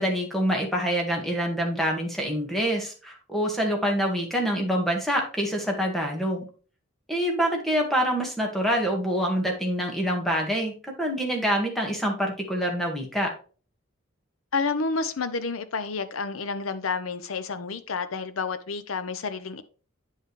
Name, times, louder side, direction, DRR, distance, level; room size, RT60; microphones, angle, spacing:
voice 1, 0.0-6.5 7.1-13.3, equal, ahead, 1.8 m, -26 dB
voice 2, 14.5-19.6, left 4 dB, 85° left, 0.8 m, -30 dB
9.0 x 5.5 x 3.2 m
head